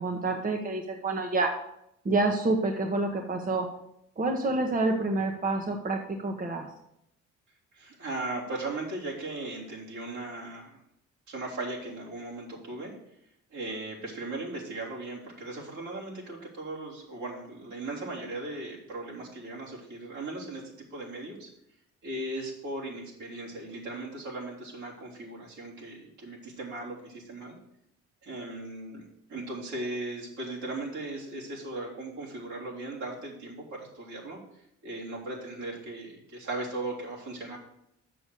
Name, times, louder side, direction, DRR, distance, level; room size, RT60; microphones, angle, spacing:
voice 1, 0.0-1.5 2.0-3.7 4.2-6.7, right 2 dB, 30° right, 3 dB, 1.1 m, -28 dB
voice 2, 7.7-10.8 11.3-12.9 13.5-21.5 22.0-27.6 28.2-29.0 29.3-34.4 34.8-37.6, right 2 dB, 70° right, -4 dB, 3.5 m, -37 dB
6.8 x 6.1 x 6.8 m, 0.78 s
cardioid pair, 90°, 30 cm